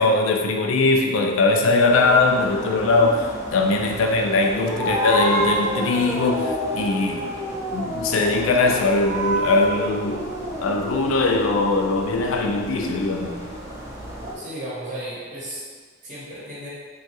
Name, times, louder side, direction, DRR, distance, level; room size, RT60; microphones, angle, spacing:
voice 1, 0.0-7.3 7.7-10.2 10.6-13.4, left 3 dB, 80° left, 3 dB, 0.4 m, -21 dB
sound 1, 1.9-14.3, right 1 dB, 15° right, 0.5 m, -29 dB
voice 2, 14.3-15.6 16.0-16.7, right 1 dB, 40° right, -8 dB, 0.8 m, -34 dB
3.0 x 2.3 x 2.8 m, 1.5 s
head